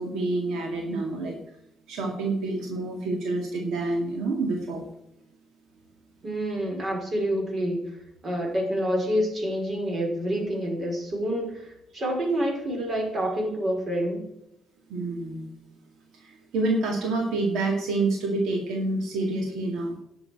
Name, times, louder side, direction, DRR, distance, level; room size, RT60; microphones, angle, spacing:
voice 1, 0.0-1.4 1.9-4.9 14.9-15.5 16.2-20.0, right 2 dB, 85° right, 1 dB, 2.2 m, -28 dB
voice 2, 6.2-8.0 8.2-14.3, equal, 45° right, 1 dB, 5.2 m, -28 dB
10.5 x 7.0 x 7.6 m, 0.81 s
cardioid pair, 90°, 0 cm